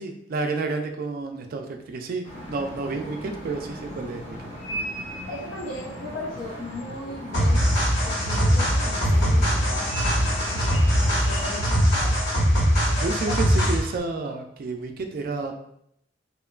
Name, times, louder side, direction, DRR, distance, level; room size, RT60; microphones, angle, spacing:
voice 1, 0.0-4.4 13.0-15.5, right 3 dB, 50° right, 5 dB, 0.3 m, -30 dB
sound 1, 2.2-11.6, equal, 35° left, 0.6 m, -37 dB
voice 2, 5.3-7.7 8.0-10.6 10.9-12.2 12.8-13.3, left 2 dB, 75° left, -4 dB, 0.5 m, -37 dB
sound 2, 7.3-13.9, equal, 55° left, 1.0 m, -21 dB
3.0 x 2.2 x 2.3 m, 0.73 s
head